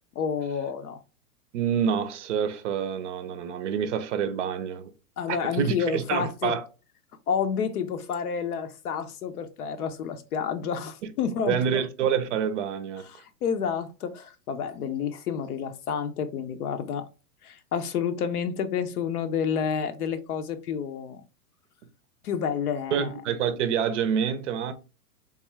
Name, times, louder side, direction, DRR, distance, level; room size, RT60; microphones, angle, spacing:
voice 1, 0.1-1.0 5.2-6.5 7.3-11.8 13.1-17.0 17.4-21.2 22.2-23.1, left 7 dB, 70° left, 0.7 m, -29 dB
voice 2, 1.5-4.9 5.3-6.7 11.0-11.1 11.5-13.2 22.9-24.7, right 7 dB, 50° right, 0.5 m, -27 dB
3.5 x 2.4 x 3.1 m
hypercardioid pair, 125°, 46 cm